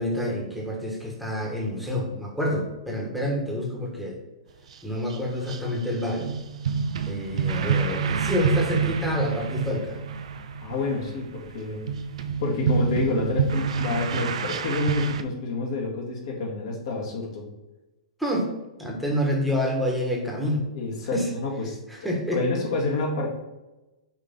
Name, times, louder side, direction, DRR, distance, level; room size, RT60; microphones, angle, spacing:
voice 1, 0.0-4.2 4.8-6.3 7.0-10.0 18.2-18.5 18.8-20.6 21.1-21.3 22.0-22.4, left 1 dB, ahead, -2 dB, 1.4 m, -27 dB
sound 1, 4.7-4.8 5.1-5.2 5.5-15.2, right 6 dB, 70° right, 0.5 m, -27 dB
voice 2, 10.6-11.8 12.4-17.5 20.7-21.8 22.3-23.3, left 3 dB, 60° left, -2 dB, 2.0 m, -28 dB
5.7 x 3.2 x 5.3 m, 1.0 s
hypercardioid pair, 130°, 3 cm